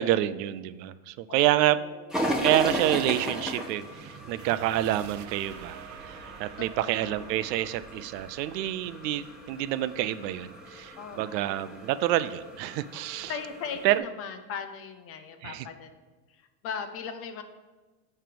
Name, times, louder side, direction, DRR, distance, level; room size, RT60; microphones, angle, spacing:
voice 1, 0.0-1.8 2.4-5.8 6.1-13.3 13.8-14.0 15.4-15.7, right 14 dB, 85° right, 14 dB, 0.6 m, -28 dB
voice 2, 1.3-2.0 6.6-7.3 11.0-11.8 13.3-15.9 16.3-17.4, left 6 dB, 30° left, 8 dB, 0.4 m, -39 dB
sound 1, 2.1-14.0, equal, ahead, 1.0 m, -36 dB
sound 2, 2.6-11.8, right 8 dB, 35° right, 0.5 m, -48 dB
9.1 x 3.3 x 6.8 m, 1.2 s
supercardioid pair, 140°, 49 cm